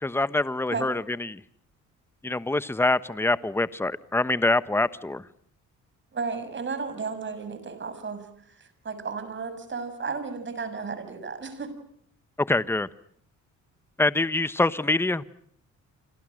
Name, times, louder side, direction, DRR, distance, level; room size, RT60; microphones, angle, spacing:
voice 1, 0.0-1.4 2.2-5.2 12.5-12.9 14.0-15.2, left 2 dB, 10° left, 15 dB, 1.1 m, -25 dB
voice 2, 6.1-11.7, right 4 dB, 40° right, 11 dB, 6.7 m, -34 dB
29.0 x 26.5 x 6.5 m, 0.66 s
cardioid pair, 90°, 30 cm